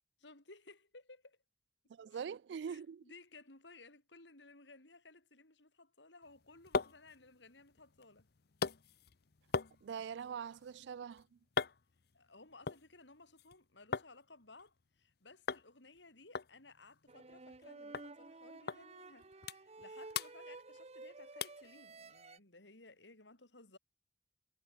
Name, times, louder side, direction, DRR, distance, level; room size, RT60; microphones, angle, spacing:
voice 1, 0.2-1.4 2.1-2.3 2.7-8.3 12.1-23.8, left 3 dB, 80° left, 5.1 m, -59 dB
voice 2, 1.9-3.0 9.8-11.4, right 7 dB, 70° right, 0.3 m, -43 dB
sound 1, 6.2-14.1 14.4-15.1 15.5-15.7 15.9-16.0 16.3-17.7 17.9-18.1 18.7-18.8 19.2-19.8 20.1-21.0 21.4-21.7 22.2-22.3, left 5 dB, 60° left, 0.8 m, -41 dB
sound 2, 17.1-22.4, right 3 dB, 35° right, 1.1 m, -53 dB
head